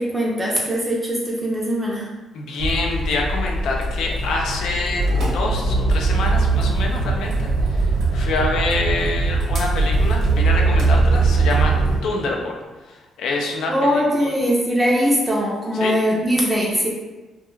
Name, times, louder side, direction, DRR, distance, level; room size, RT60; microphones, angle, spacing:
voice 1, 0.0-2.1 13.7-16.9, equal, 10° right, -3 dB, 0.5 m, -21 dB
voice 2, 2.3-11.8 12.0-12.6 12.9-13.7 14.2-14.3 15.7-16.0, left 3 dB, 75° left, 0 dB, 0.4 m, -26 dB
sound 1, 2.6-12.0, right 3 dB, 65° right, 0.8 m, -20 dB
2.3 x 2.2 x 3.1 m, 1.1 s
cardioid pair, 90°, 0 cm